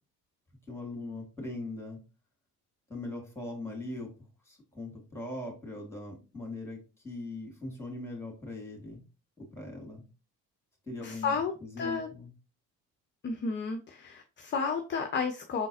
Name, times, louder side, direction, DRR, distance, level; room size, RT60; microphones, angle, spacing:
voice 1, 0.7-2.0 2.9-4.1 4.5-6.8 7.0-9.0 9.4-10.0 10.9-12.3, left 2 dB, 5° left, 1 dB, 2.1 m, -40 dB
voice 2, 11.0-11.5 11.8-12.1 13.2-15.7, left 5 dB, 25° left, 5 dB, 0.6 m, -32 dB
5.0 x 3.8 x 2.7 m, 0.32 s
figure-of-eight pair, 55°, 50 cm